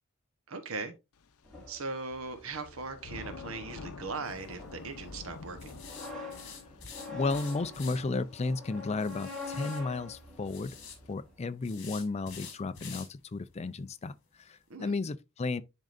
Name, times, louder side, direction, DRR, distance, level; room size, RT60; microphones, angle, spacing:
voice 1, 0.5-0.9 1.7-5.8 14.7-15.0, right 3 dB, 70° right, 1.0 m, -39 dB
Thunder / Rain, 1.2-11.1, left 4 dB, 80° left, 0.6 m, -50 dB
sound 1, 1.4-11.4, left 3 dB, 5° left, 2.5 m, -46 dB
sound 2, 4.3-4.5 5.6-8.0 9.0-9.8 10.5-11.0 11.6-13.1 13.5-13.6 14.0-14.1 14.5-14.6, left 6 dB, 60° left, 1.8 m, -47 dB
voice 2, 7.1-10.8 11.1-15.6, left 3 dB, 30° left, 0.4 m, -34 dB
10.5 x 3.8 x 2.5 m
head